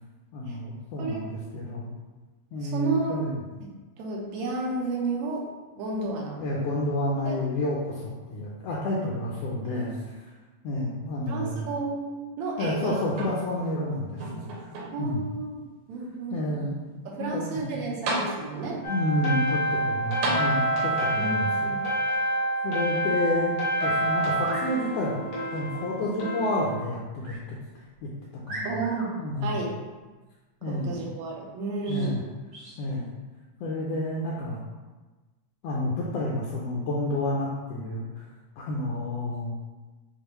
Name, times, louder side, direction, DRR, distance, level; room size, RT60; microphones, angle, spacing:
voice 1, 0.3-1.9 2.5-3.4 6.4-10.2 10.6-11.7 12.6-14.7 15.0-15.2 16.3-16.8 17.2-17.8 18.6-21.7 22.6-25.2 25.5-27.6 28.0-28.1 28.5-28.8 29.2-29.6 30.6-31.0 31.9-32.2 32.8-33.1 33.6-34.6 35.6-38.3 38.7-39.5, left 1 dB, 80° left, -4 dB, 1.5 m, -30 dB
voice 2, 2.6-3.2 4.0-5.4 5.8-6.4 7.3-7.4 9.6-9.9 11.3-13.0 14.9-15.6 15.9-16.6 17.1-18.8 21.2-21.8 28.7-29.1 29.4-29.7 30.7-32.2, right 3 dB, 75° right, -2 dB, 2.0 m, -31 dB
sound 1, 13.1-13.8 14.2-15.2 15.9-16.0 17.6-17.7 18.1-18.8 20.2-21.1 22.1-22.2, right 2 dB, 90° right, 2.3 m, -33 dB
sound 2, 18.8-26.7, right 1 dB, 60° left, 0.9 m, -27 dB
sound 3, 24.3-24.7 27.2-27.4 27.9-28.0 28.4-29.1 31.8-32.1 32.5-32.8, right 1 dB, 50° right, 1.3 m, -39 dB
6.7 x 2.5 x 3.0 m, 1.2 s
omnidirectional pair, 3.3 m